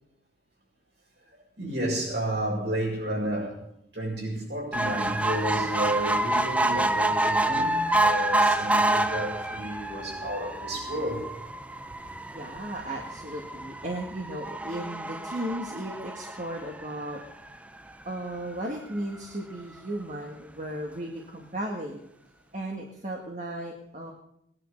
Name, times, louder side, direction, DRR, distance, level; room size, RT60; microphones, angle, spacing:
voice 1, 1.6-3.6 3.9-11.2, right 1 dB, 65° right, -2 dB, 7.2 m, -31 dB
sound 1, 4.7-17.3 17.9-18.0 18.3-18.4 18.6-18.7, right 1 dB, 5° right, 0.6 m, -28 dB
voice 2, 12.3-17.2 18.0-22.1 22.5-24.1, right 1 dB, 40° right, 0 dB, 1.8 m, -35 dB
19.5 x 10.5 x 6.6 m, 0.74 s
head